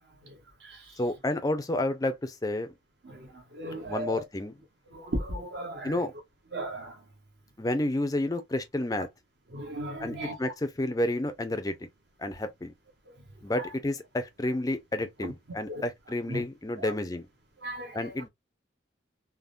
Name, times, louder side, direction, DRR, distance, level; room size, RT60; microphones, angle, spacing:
voice 1, 0.2-1.0 3.0-4.2 4.9-6.0 6.5-7.0 9.5-10.5 13.1-13.2 13.5-13.7 15.2-15.3 15.7-15.9 16.3-16.4 16.8-16.9 17.6-18.1, right 1 dB, 55° right, 0.8 m, -37 dB
voice 2, 1.0-2.7 3.9-4.5 5.8-6.1 7.6-9.1 10.0-11.8 12.2-12.7 13.4-17.3 17.9-18.3, left 1 dB, 20° left, 0.4 m, -30 dB
3.4 x 2.1 x 2.4 m
head